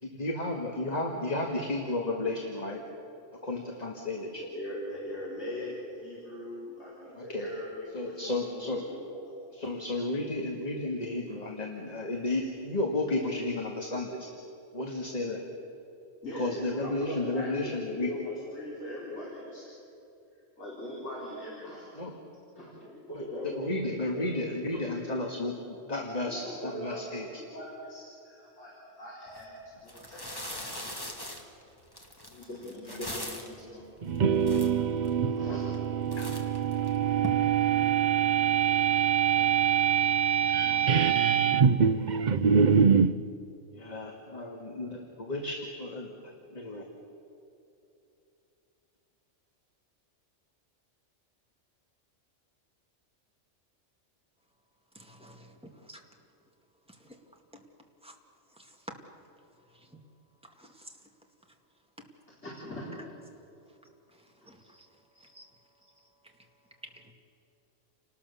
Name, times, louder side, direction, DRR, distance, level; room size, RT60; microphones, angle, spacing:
voice 1, 0.0-2.8 3.4-4.4 7.1-7.5 7.9-8.8 9.5-14.3 14.7-15.4 16.3-18.1 22.0-22.1 23.2-27.3 32.9-33.0 36.1-36.3 43.7-46.8, left 2 dB, 35° left, 1 dB, 2.0 m, -33 dB
voice 2, 4.5-9.2 16.2-19.7 20.6-22.1 22.6-23.7 24.0-24.3 24.7-24.8 26.3-31.1 32.2-33.9 34.8-34.9 35.2-35.7 62.4-62.8 64.6-64.7 65.1-65.3 65.8-65.9, left 1 dB, 65° left, -7 dB, 5.2 m, -41 dB
plastic bag rustling, 29.3-29.4 29.9-33.6 34.2-34.3 34.4-35.1 35.6-35.9 36.1-37.3, left 1 dB, 20° left, 2.4 m, -40 dB
sound 1, 34.0-43.2, right 7 dB, 45° right, 0.7 m, -24 dB
voice 3, 54.9-55.5 55.8-56.0 57.0-57.2 58.0-58.1 58.6-58.7 60.6-60.9 64.4-64.9 65.3-65.5 67.0-67.1, equal, 5° right, 1 dB, 2.2 m, -52 dB
29.0 x 19.5 x 7.0 m, 2.8 s
omnidirectional pair, 1.3 m